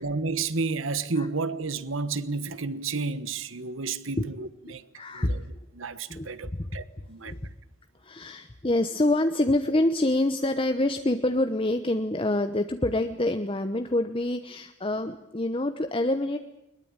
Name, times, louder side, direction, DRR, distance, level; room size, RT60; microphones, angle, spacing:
voice 1, 0.0-4.8 5.1-5.4 5.7-7.3, right 4 dB, 75° right, 1.3 m, -31 dB
voice 2, 4.7-5.4 6.1-6.8 7.2-7.4 8.0-16.4, left 1 dB, 25° left, 0.9 m, -26 dB
22.5 x 21.5 x 8.9 m
head